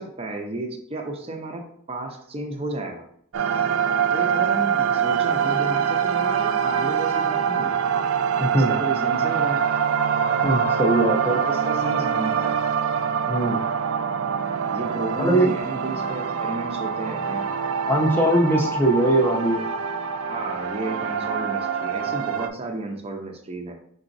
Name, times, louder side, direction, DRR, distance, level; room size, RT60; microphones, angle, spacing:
voice 1, 0.0-3.0 4.1-7.8 8.5-9.7 11.3-12.6 14.7-17.5 20.3-23.7, right 2 dB, 25° right, 2 dB, 0.6 m, -32 dB
sound 1, 3.3-22.5, right 7 dB, 75° right, 0.4 m, -24 dB
voice 2, 8.4-8.8 10.4-11.4 13.3-13.6 15.2-15.5 17.9-19.6, right 1 dB, 10° left, 0 dB, 0.6 m, -20 dB
4.9 x 3.9 x 2.6 m, 0.65 s
head